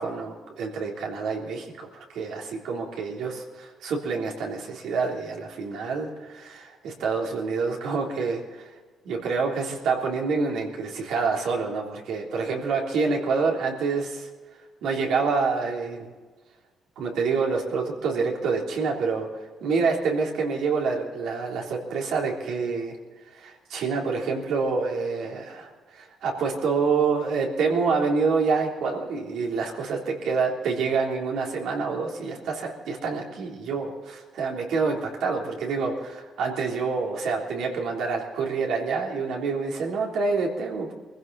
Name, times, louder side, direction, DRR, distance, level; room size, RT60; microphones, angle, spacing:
voice 1, 0.0-8.7 9.1-14.3 14.8-16.1 17.0-19.3 19.6-23.0 23.3-30.0 30.3-40.9, right 4 dB, 80° right, -1 dB, 3.4 m, -27 dB
22.0 x 15.5 x 4.2 m, 1.4 s
cardioid pair, 90°, 0 cm